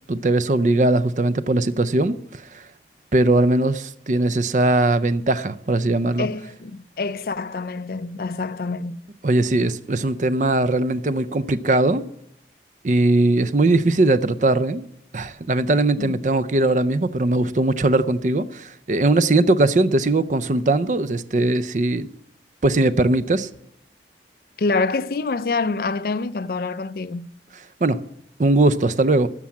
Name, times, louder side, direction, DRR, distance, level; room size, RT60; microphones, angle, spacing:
voice 1, 0.1-2.6 3.1-6.3 9.2-12.0 12.8-14.9 15.1-22.1 22.6-23.5 27.8-28.0 28.4-29.3, right 2 dB, 45° right, 0.5 m, -20 dB
voice 2, 6.2-9.0 16.0-16.2 24.6-27.3, left 3 dB, 55° left, 0.4 m, -26 dB
13.0 x 6.2 x 7.3 m
head